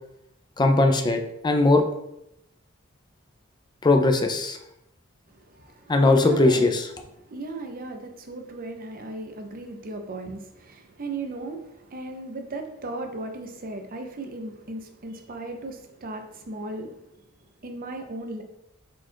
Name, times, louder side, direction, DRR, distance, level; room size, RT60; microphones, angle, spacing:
voice 1, 0.6-1.8 3.8-4.6 5.9-6.8, left 2 dB, 20° left, 5 dB, 0.4 m, -19 dB
voice 2, 5.3-6.7 7.2-17.0 17.6-18.4, right 2 dB, 40° right, 5 dB, 0.6 m, -36 dB
4.4 x 2.3 x 4.4 m, 0.80 s
head